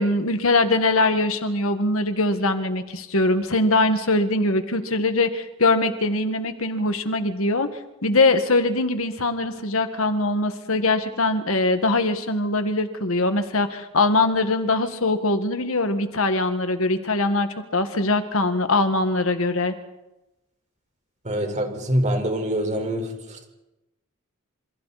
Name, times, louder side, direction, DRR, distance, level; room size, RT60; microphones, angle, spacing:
voice 1, 0.0-7.7 8.0-19.7, left 2 dB, 75° left, 8 dB, 1.9 m, -22 dB
voice 2, 21.2-23.4, equal, 35° right, 3 dB, 4.8 m, -25 dB
28.5 x 27.5 x 4.3 m, 0.99 s
head